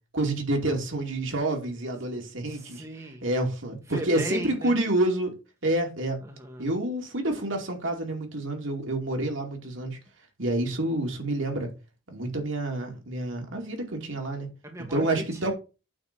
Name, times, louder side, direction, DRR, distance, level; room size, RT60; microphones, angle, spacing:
voice 1, 0.1-2.8 3.2-5.3 5.6-6.2 6.6-10.0 10.4-11.7 12.1-14.5 14.9-15.5, right 1 dB, 70° right, 2.5 m, -28 dB
voice 2, 2.5-3.3 3.9-4.8 6.2-6.7 14.6-15.5, equal, 15° right, 1.4 m, -37 dB
8.7 x 4.1 x 6.7 m
head